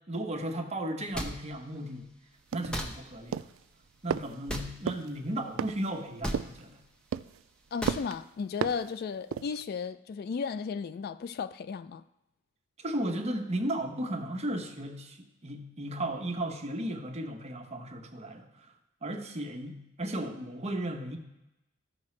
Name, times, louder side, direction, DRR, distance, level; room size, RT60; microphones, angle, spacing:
voice 1, 0.1-2.1 2.5-3.5 4.0-6.8 12.8-18.7 19.0-21.2, right 1 dB, 35° right, 1.0 m, -35 dB
sound 1, 1.1-1.3 2.7-2.9 4.5-4.7 6.2-6.4 7.8-8.0, equal, 5° left, 0.9 m, -33 dB
sound 2, 2.5-2.9 3.3-3.6 4.1-4.3 4.9-5.1 5.6-5.9 6.3-6.6 7.1-7.4 7.9-8.2 8.6-8.9 9.3-9.6, right 7 dB, 75° right, 0.3 m, -33 dB
voice 2, 7.7-12.0, left 5 dB, 50° left, 0.3 m, -35 dB
14.5 x 5.8 x 3.2 m
head